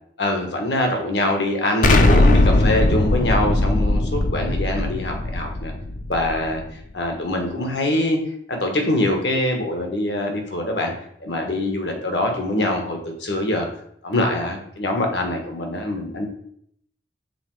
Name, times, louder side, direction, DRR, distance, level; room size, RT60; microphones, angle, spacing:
voice 1, 0.2-5.7 6.1-6.6 6.9-8.2 8.5-10.9 11.2-13.7 14.0-16.3, left 1 dB, 65° left, 3 dB, 1.3 m, -24 dB
Explosion, 1.8-6.7, left 2 dB, 45° left, 0.5 m, -19 dB
7.0 x 3.9 x 4.7 m, 0.69 s
head